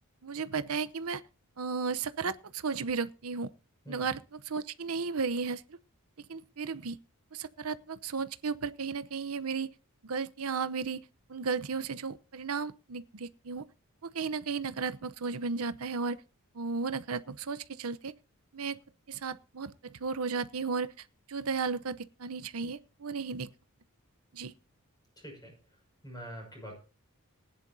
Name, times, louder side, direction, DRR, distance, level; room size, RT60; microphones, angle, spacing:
voice 1, 0.2-1.2 1.6-3.5 3.9-5.8 6.3-7.0 7.3-9.7 10.0-11.0 11.3-13.6 14.0-16.2 16.5-18.1 18.5-18.8 19.1-23.5 24.3-24.5, right 5 dB, 70° right, 0.8 m, -34 dB
voice 2, 25.2-25.6 26.0-26.8, equal, 20° left, 6.1 m, -44 dB
19.5 x 10.5 x 2.7 m
head